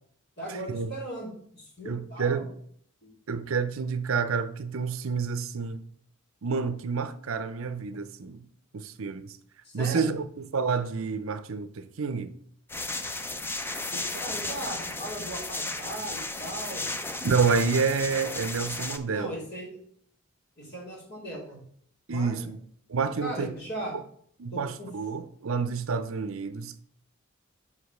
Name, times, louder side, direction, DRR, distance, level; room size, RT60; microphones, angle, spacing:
voice 1, 0.4-2.5 3.0-3.1 9.6-10.2 13.8-16.8 19.1-19.8 20.6-21.6 22.1-22.4 23.2-24.0 24.5-24.9, right 1 dB, 50° left, 3.3 m, -38 dB
voice 2, 1.8-2.5 3.3-5.8 6.4-8.4 8.7-9.4 9.7-12.3 17.2-19.4 22.1-22.6 22.9-23.5 24.4-26.8, right 5 dB, 65° right, 0.6 m, -29 dB
sound 1, 12.7-19.0, left 2 dB, 10° left, 0.4 m, -34 dB
5.7 x 5.0 x 6.3 m
head